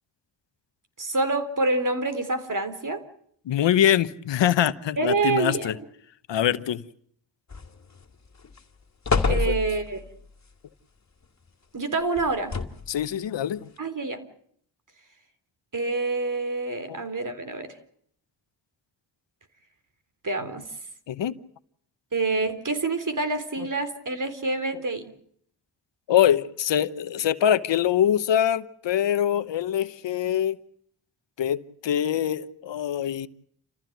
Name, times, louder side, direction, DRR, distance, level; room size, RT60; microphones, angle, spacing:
voice 1, 1.0-3.0 5.0-5.8 9.2-10.0 11.7-12.5 13.8-14.2 15.7-17.8 20.2-20.7 22.1-25.1, right 3 dB, 45° right, 3.7 m, -27 dB
voice 2, 3.5-5.7 6.3-6.8 9.3-9.6 12.9-13.6 16.9-17.0 21.1-21.4 26.1-30.6 31.4-33.3, left 10 dB, 85° left, 1.0 m, -24 dB
sound 1, 7.5-8.0 8.4-8.6 9.0-10.1 12.2-13.0 13.8-13.9, left 4 dB, 40° left, 2.4 m, -27 dB
29.0 x 15.0 x 9.2 m
cardioid pair, 55°, 43 cm